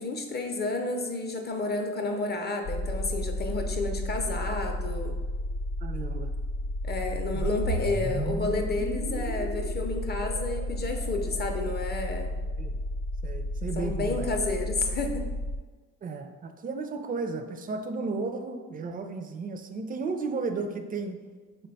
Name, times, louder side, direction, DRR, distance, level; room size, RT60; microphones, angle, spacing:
voice 1, 0.0-5.2 6.8-12.3 13.8-15.3, left 3 dB, 35° left, 4 dB, 0.5 m, -31 dB
sound 1, 2.6-15.6, left 1 dB, 80° left, 0.5 m, -32 dB
voice 2, 5.8-6.3 7.3-7.5 12.6-12.8 13.2-14.3 16.0-21.2, right 4 dB, 30° right, 7 dB, 0.4 m, -34 dB
sound 2, 7.4-11.6, right 2 dB, 85° right, 0.8 m, -35 dB
4.0 x 2.2 x 3.9 m, 1.4 s
cardioid pair, 90°, 30 cm